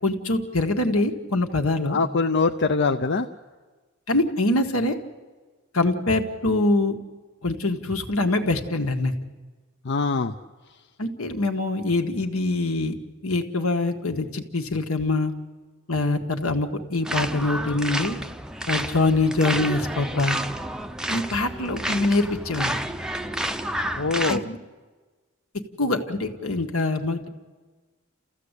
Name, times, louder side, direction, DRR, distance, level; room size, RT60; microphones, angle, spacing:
voice 1, 0.0-2.0 4.1-5.0 5.7-7.0 7.4-9.1 11.0-12.9 13.2-15.3 15.9-18.2 18.7-20.4 21.1-22.8 24.3-24.6 25.8-27.3, left 2 dB, 80° left, 5 dB, 1.8 m, -24 dB
voice 2, 1.9-3.3 9.8-10.3 24.0-24.4, left 4 dB, 55° left, 6 dB, 0.6 m, -23 dB
sound 1, 17.0-24.4, right 1 dB, 5° right, 0.6 m, -30 dB
29.5 x 15.0 x 8.3 m, 1.4 s
head